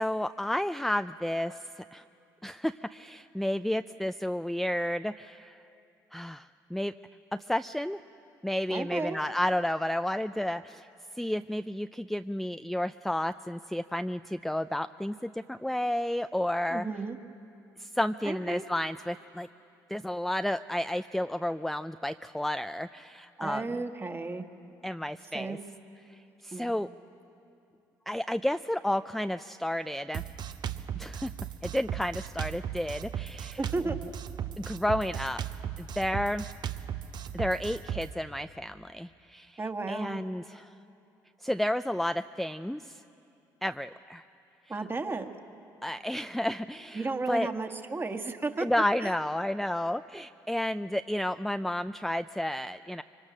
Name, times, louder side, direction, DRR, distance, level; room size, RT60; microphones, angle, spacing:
voice 1, 0.0-2.0 2.4-5.6 6.1-6.9 7.5-8.0 8.4-10.9 11.2-16.9 17.8-19.5 19.9-23.7 24.8-25.6 26.4-26.9 28.1-30.2 31.0-31.3 31.6-33.6 34.6-36.4 37.3-39.6 39.9-40.7 41.4-43.0 43.6-44.2 45.8-47.5 48.6-53.0, left 1 dB, ahead, 10 dB, 0.4 m, -31 dB
voice 2, 8.7-9.2 16.7-17.2 18.2-18.6 23.4-24.4 25.3-25.6 26.5-26.7 33.6-34.0 39.6-40.2 44.7-45.3 46.9-48.7 49.0-49.1, right 3 dB, 25° right, 7 dB, 1.7 m, -33 dB
Drum kit, 30.1-38.1, right 9 dB, 55° right, 0.9 m, -36 dB
25.0 x 23.5 x 6.2 m, 2.7 s
supercardioid pair, 65°, 9 cm